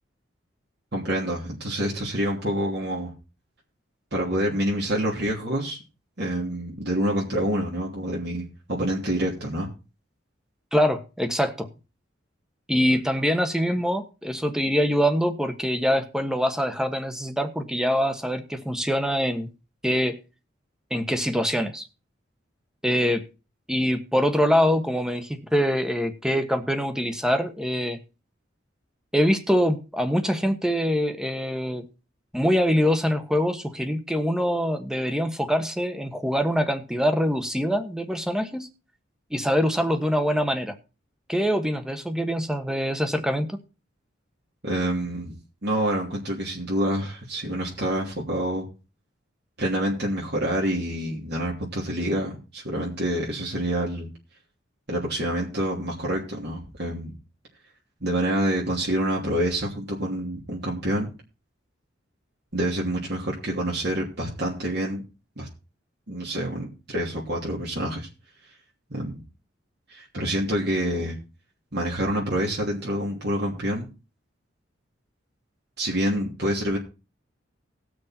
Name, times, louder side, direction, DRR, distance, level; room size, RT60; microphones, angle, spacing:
voice 1, 0.9-3.1 4.1-5.8 6.2-9.7 44.6-45.3 45.6-48.7 49.6-54.1 54.9-57.1 58.0-61.1 62.5-65.0 65.4-65.5 66.1-68.1 68.9-69.2 69.9-71.2 71.7-73.9 75.8-76.8, right 1 dB, 55° right, -3 dB, 3.0 m, -27 dB
voice 2, 10.7-11.7 12.7-19.5 19.8-20.2 20.9-21.8 22.8-23.2 23.7-28.0 29.1-31.8 32.3-38.7 39.3-40.7 41.3-43.6, equal, 5° right, 8 dB, 1.3 m, -24 dB
18.5 x 6.4 x 4.4 m, 0.31 s
head